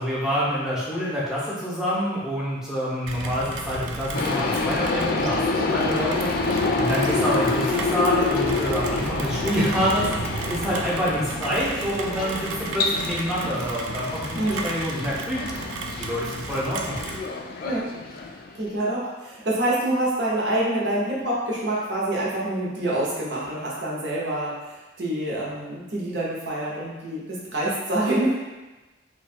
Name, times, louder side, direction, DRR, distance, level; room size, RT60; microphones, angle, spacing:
voice 1, 0.0-15.4 15.9-17.0, equal, 5° right, -8 dB, 0.8 m, -27 dB
Rain, 3.1-17.3, right 3 dB, 80° right, 0.4 m, -34 dB
sound 1, 4.1-18.7, left 3 dB, 45° left, 0.3 m, -28 dB
voice 2, 14.3-14.7 17.6-17.9 18.5-28.3, right 1 dB, 60° right, -6 dB, 0.9 m, -26 dB
3.0 x 2.3 x 4.2 m, 1.1 s
head